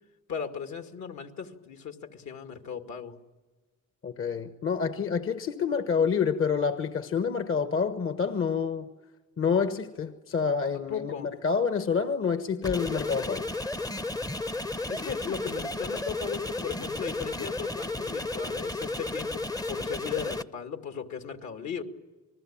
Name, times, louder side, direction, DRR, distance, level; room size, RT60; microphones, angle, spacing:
voice 1, 0.3-3.1 10.9-11.3 14.9-21.8, left 7 dB, 65° left, 2.3 m, -37 dB
voice 2, 4.0-8.8 9.4-13.5, left 6 dB, 45° left, 1.3 m, -28 dB
sound 1, 12.6-20.4, left 2 dB, 10° left, 0.8 m, -33 dB
28.5 x 20.0 x 8.8 m
cardioid pair, 90°, 30 cm